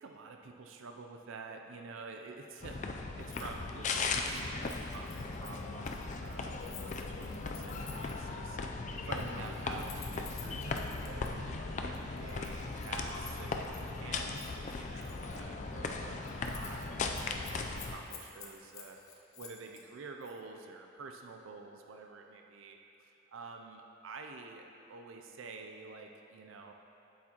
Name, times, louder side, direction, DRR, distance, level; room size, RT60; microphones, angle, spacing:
voice 1, 0.0-8.6 9.0-19.0 19.4-22.8 23.3-26.7, right 4 dB, 65° right, 3 dB, 0.4 m, -49 dB
sound 1, 2.6-18.0, left 3 dB, 35° left, 0.4 m, -38 dB
Keys jangling, 3.2-3.5 3.8-8.3 9.0-11.3 11.9-13.9 14.3-15.4 15.8-15.9 16.2-16.9 17.1-19.8 20.2-20.4, left 7 dB, 75° left, 0.9 m, -52 dB
8.7 x 8.0 x 2.9 m, 2.9 s
head